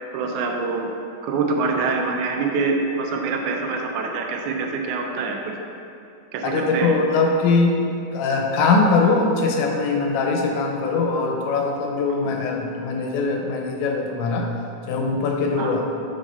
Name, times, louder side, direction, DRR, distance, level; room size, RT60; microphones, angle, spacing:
voice 1, 0.1-0.9 1.2-5.4 6.3-6.9 15.6-15.7, right 4 dB, 90° right, 2 dB, 2.2 m, -25 dB
voice 2, 6.4-7.8 8.1-14.5 14.9-15.9, left 3 dB, 80° left, 2 dB, 2.1 m, -21 dB
7.2 x 3.6 x 5.5 m, 2.6 s
omnidirectional pair, 3.4 m